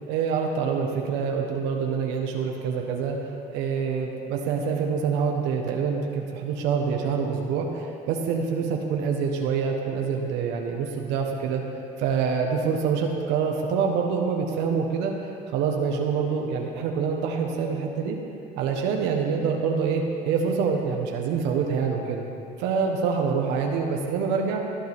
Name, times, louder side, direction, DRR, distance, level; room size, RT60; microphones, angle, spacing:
voice 1, 0.1-3.2 3.5-11.6 12.0-15.1 15.5-18.2 18.6-22.2 22.6-24.6, right 6 dB, 80° right, 1 dB, 1.4 m, -26 dB
18.5 x 9.3 x 3.7 m, 2.5 s
cardioid pair, 105°, 18 cm